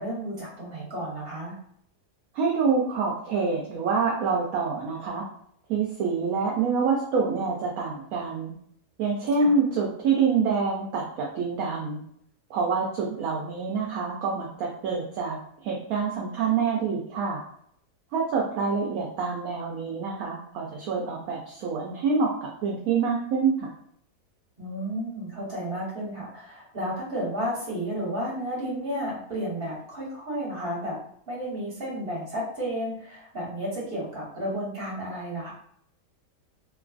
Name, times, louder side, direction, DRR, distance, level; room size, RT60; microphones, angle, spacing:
voice 1, 0.0-1.6 9.4-9.5 24.6-31.0 31.3-35.5, equal, 35° right, -5 dB, 1.4 m, -32 dB
voice 2, 2.3-5.2 5.7-8.5 9.0-12.0 12.5-17.4 18.1-23.7, right 5 dB, 70° right, -2 dB, 0.9 m, -26 dB
3.1 x 2.3 x 2.4 m, 0.66 s
omnidirectional pair, 1.8 m